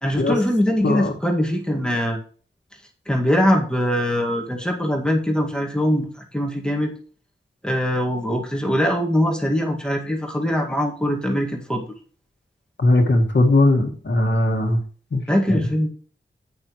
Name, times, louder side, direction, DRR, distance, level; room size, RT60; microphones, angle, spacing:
voice 1, 0.0-2.2 3.1-6.9 7.6-11.8 15.3-15.9, equal, 5° left, 0 dB, 2.0 m, -22 dB
voice 2, 12.8-14.8 15.1-15.2 15.5-15.7, left 2 dB, 65° left, 2 dB, 1.9 m, -18 dB
10.5 x 9.2 x 3.1 m, 0.43 s
wide cardioid pair, 85°, 20 cm